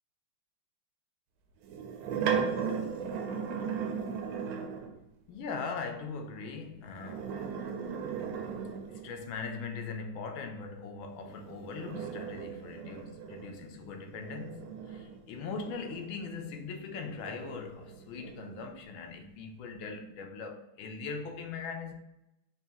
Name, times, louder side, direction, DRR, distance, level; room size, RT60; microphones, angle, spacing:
sound 1, 1.6-5.0 6.9-9.3 11.2-16.4 16.9-18.7, right 6 dB, 90° right, 1.5 m, -37 dB
voice 1, 5.3-7.4 8.9-21.9, left 4 dB, 80° left, 1.4 m, -40 dB
4.1 x 2.7 x 3.4 m
omnidirectional pair, 2.2 m